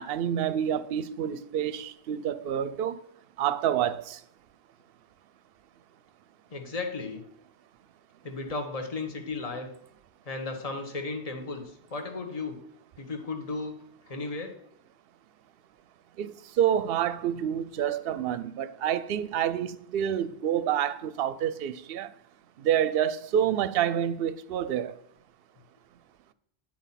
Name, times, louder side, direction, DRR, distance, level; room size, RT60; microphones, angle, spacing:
voice 1, 0.0-3.0 3.4-4.2 16.2-22.1 22.6-25.0, right 10 dB, 65° right, 0.8 m, -28 dB
voice 2, 6.5-7.2 8.2-9.7 10.2-12.6 13.0-13.8 14.1-14.5, left 3 dB, 35° left, 1.3 m, -35 dB
10.5 x 4.4 x 5.7 m
omnidirectional pair, 1.1 m